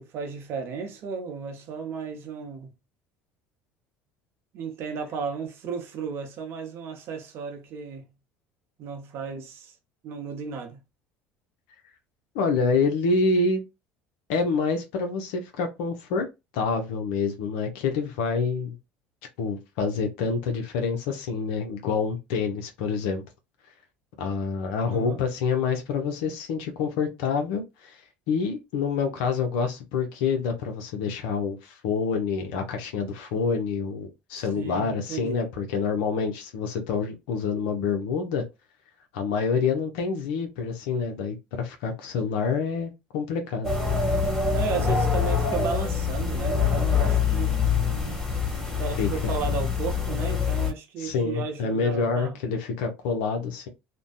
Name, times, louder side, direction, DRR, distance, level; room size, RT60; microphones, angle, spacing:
voice 1, 0.0-2.7 4.5-8.0 8.8-9.7 10.0-10.8 24.9-25.2 34.3-35.4 44.5-47.6 48.8-52.4, right 5 dB, 55° right, 0.7 m, -34 dB
voice 2, 12.3-13.6 14.3-16.3 16.5-18.8 19.4-23.2 24.2-28.0 28.3-38.5 39.1-43.7 44.7-44.9 49.0-49.1 51.0-53.7, left 5 dB, 75° left, 0.6 m, -27 dB
sound 1, 43.6-50.7, left 5 dB, 10° left, 1.5 m, -25 dB
2.6 x 2.1 x 2.2 m
hypercardioid pair, 75°, 5 cm